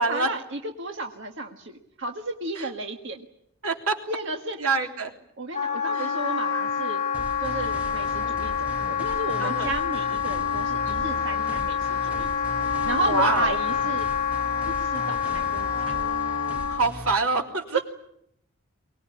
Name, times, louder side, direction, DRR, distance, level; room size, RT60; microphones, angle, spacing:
voice 1, 0.0-3.3 4.1-4.6 5.4-7.0 7.4-12.3 12.8-14.1 14.8-16.0 17.7-17.8, right 2 dB, 60° right, 3 dB, 1.7 m, -32 dB
voice 2, 3.6-4.0 4.6-5.1 5.9-6.1 9.4-9.7 13.0-13.6 16.7-17.8, right 3 dB, 90° right, 3 dB, 3.4 m, -26 dB
Wind instrument woodwind instrument, 5.5-16.9, left 7 dB, 40° left, 3.4 m, -27 dB
sound 1, 7.1-17.1, left 1 dB, 5° right, 1.6 m, -39 dB
24.0 x 19.5 x 9.9 m, 0.75 s
head